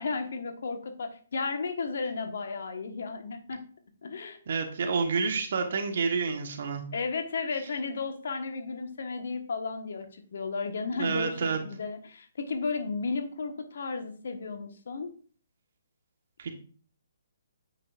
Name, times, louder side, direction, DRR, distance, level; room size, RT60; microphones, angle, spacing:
voice 1, 0.0-3.6 4.0-4.4 6.9-15.1, left 4 dB, 60° left, 6 dB, 1.3 m, -34 dB
voice 2, 4.5-6.8 10.9-11.6 16.4-16.5, right 5 dB, 55° right, 5 dB, 1.4 m, -29 dB
8.8 x 6.2 x 2.5 m, 0.43 s
figure-of-eight pair, 135°, 0 cm